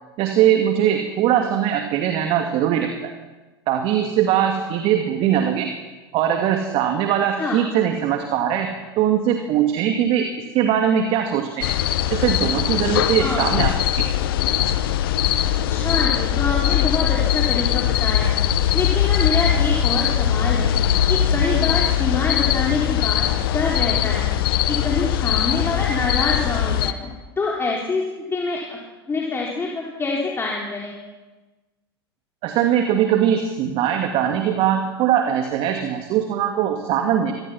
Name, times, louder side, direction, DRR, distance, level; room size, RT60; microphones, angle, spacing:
voice 1, 0.2-2.9 3.7-5.7 6.1-10.3 10.5-11.7 12.1-14.1 32.4-37.3, right 9 dB, 45° right, 4 dB, 2.4 m, -21 dB
sound 1, 11.6-26.9, left 11 dB, 60° left, 1.3 m, -21 dB
voice 2, 15.7-18.4 18.7-20.7 21.1-24.3 24.7-28.0 28.3-28.8 29.1-30.9, left 3 dB, 20° left, -2 dB, 4.2 m, -26 dB
26.0 x 19.5 x 6.0 m, 1.2 s
figure-of-eight pair, 85°, 13 cm